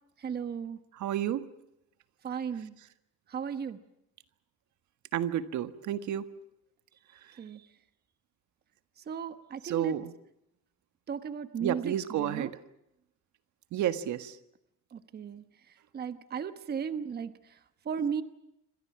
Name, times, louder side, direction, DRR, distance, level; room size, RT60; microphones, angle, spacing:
voice 1, 0.2-0.8 2.2-2.7 3.3-3.8 7.4-7.6 9.1-9.9 11.1-12.5 14.9-15.4 15.9-17.6 17.8-18.2, right 7 dB, 35° right, 11 dB, 1.1 m, -35 dB
voice 2, 0.9-1.5 5.1-6.3 9.6-10.1 11.6-12.6 13.7-14.4, right 11 dB, 75° right, 11 dB, 1.6 m, -31 dB
28.0 x 25.5 x 6.0 m, 0.81 s
cardioid pair, 175°, 30 cm